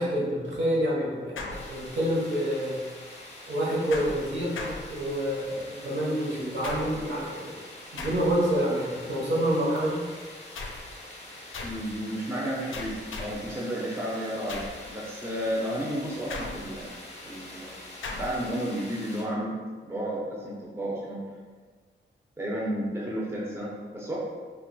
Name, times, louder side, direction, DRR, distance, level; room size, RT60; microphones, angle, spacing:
voice 1, 0.0-2.8 3.5-7.6 7.9-10.1, equal, 60° right, -5 dB, 0.9 m, -28 dB
sound 1, 1.4-2.2 3.9-5.4 6.6-7.2 8.0-8.6 10.5-11.0 11.5-11.9 12.7-13.5 14.5-14.9 16.3-16.9 18.0-18.5, left 3 dB, 80° left, 0.4 m, -38 dB
sound 2, 1.5-19.2, left 1 dB, 30° left, 0.6 m, -45 dB
voice 2, 11.6-16.9 17.2-17.7 18.2-19.6 19.8-21.2 22.4-24.2, equal, 10° right, -5 dB, 0.5 m, -32 dB
2.5 x 2.2 x 3.9 m, 1.5 s
wide cardioid pair, 140°, 20 cm